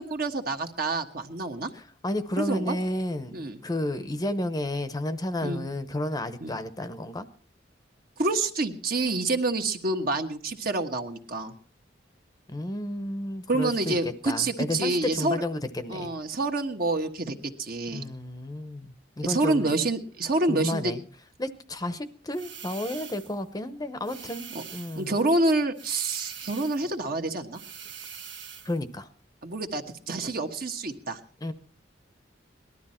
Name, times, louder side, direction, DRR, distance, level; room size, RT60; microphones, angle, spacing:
voice 1, 0.0-1.7 2.4-2.8 3.3-3.6 5.4-5.6 6.4-6.5 8.2-11.5 13.5-15.4 15.9-18.0 19.2-20.9 24.5-24.6 24.9-27.6 29.4-31.2, right 2 dB, 55° right, 6 dB, 1.3 m, -27 dB
voice 2, 1.7-7.3 12.5-14.0 14.2-16.1 17.9-19.7 20.5-21.0 21.4-25.1 28.6-29.1 31.4-31.5, left 1 dB, 20° left, 11 dB, 0.8 m, -32 dB
sound 1, 22.3-23.4 24.0-25.1 25.8-26.9 27.5-28.8, right 7 dB, 80° right, 1.5 m, -43 dB
19.0 x 12.5 x 4.3 m, 0.43 s
head